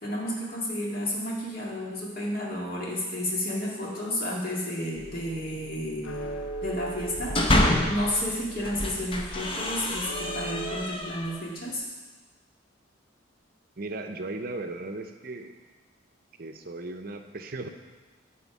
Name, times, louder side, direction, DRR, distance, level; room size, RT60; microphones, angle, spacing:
voice 1, 0.0-6.4 6.6-11.8, left 1 dB, 45° left, -4 dB, 2.0 m, -32 dB
sound 1, 4.9-10.9, right 2 dB, 85° left, 0.7 m, -39 dB
sound 2, 7.0-8.1 8.6-11.4, left 1 dB, 25° left, 0.7 m, -27 dB
voice 2, 13.8-15.5 16.4-17.7, right 2 dB, 45° right, 6 dB, 0.6 m, -36 dB
9.5 x 4.3 x 7.2 m, 1.3 s
head